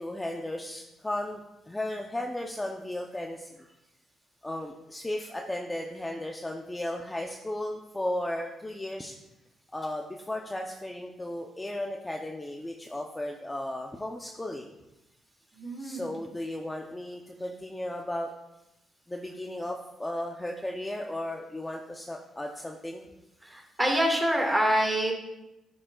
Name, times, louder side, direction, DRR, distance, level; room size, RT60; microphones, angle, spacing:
voice 1, 0.0-3.5 4.4-9.1 9.7-14.7 15.8-18.3 19.1-23.1, left 1 dB, 15° left, 1 dB, 0.7 m, -35 dB
voice 2, 15.5-16.1 23.4-25.1, equal, 10° right, 0 dB, 1.9 m, -26 dB
11.0 x 6.2 x 2.4 m, 0.93 s
cardioid pair, 90°, 0 cm